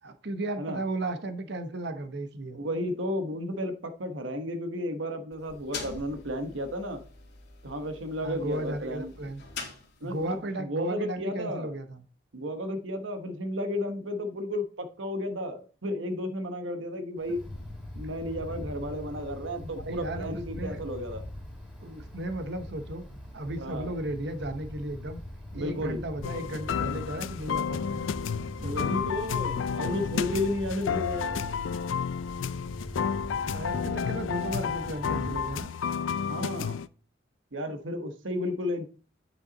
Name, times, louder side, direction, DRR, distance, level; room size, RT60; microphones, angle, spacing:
voice 1, 0.0-2.6 8.2-9.4 10.0-12.0 19.6-20.8 21.8-23.1 23.3-25.2 25.5-28.1 28.6-28.9 33.5-35.7, right 1 dB, 60° right, 9 dB, 0.9 m, -35 dB
voice 2, 2.5-7.0 7.6-9.1 10.0-11.7 12.3-17.4 17.9-21.2 23.6-23.9 25.5-26.0 28.6-31.4 36.2-36.8 37.5-38.9, left 1 dB, 80° right, 7 dB, 1.1 m, -33 dB
sound 1, 5.3-10.4, left 4 dB, 65° left, 2.4 m, -44 dB
Wind, 17.2-35.6, left 1 dB, 5° right, 2.6 m, -41 dB
sound 2, 26.2-36.9, left 7 dB, 85° left, 0.4 m, -31 dB
8.8 x 5.7 x 4.0 m, 0.38 s
head